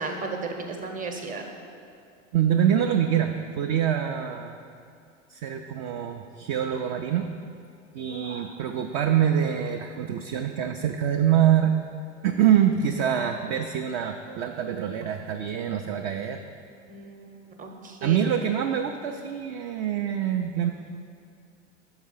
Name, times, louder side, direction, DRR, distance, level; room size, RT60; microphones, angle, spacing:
voice 1, 0.0-1.4 8.1-8.4 16.9-17.3 17.6-18.2, right 4 dB, 20° right, 3 dB, 0.8 m, -34 dB
voice 2, 2.3-3.3 3.6-4.5 5.3-7.3 7.9-11.8 12.2-16.4 18.0-20.7, right 9 dB, 40° right, 4 dB, 0.4 m, -25 dB
6.3 x 4.8 x 5.5 m, 2.3 s
hypercardioid pair, 85°, 37 cm